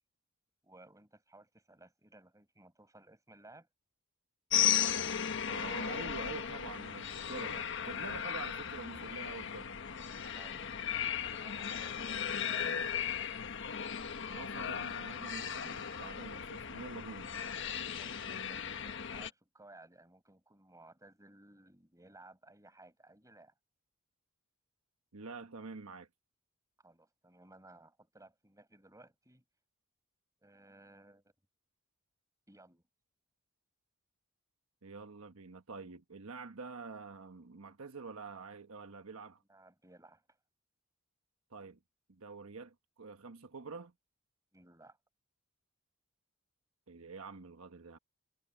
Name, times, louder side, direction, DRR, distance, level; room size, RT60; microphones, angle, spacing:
voice 1, 0.6-3.7 10.4-13.1 17.9-23.5 26.8-29.4 30.4-31.2 32.5-32.8 39.5-40.4 44.5-45.0, right 2 dB, 15° right, 5.9 m, -59 dB
sound 1, 4.5-19.3, left 8 dB, 60° left, 1.4 m, -36 dB
voice 2, 5.5-9.7 14.3-17.3 25.1-26.1 34.8-39.4 41.5-41.8 42.1-43.9 46.9-48.0, right 4 dB, 75° right, 1.2 m, -47 dB
head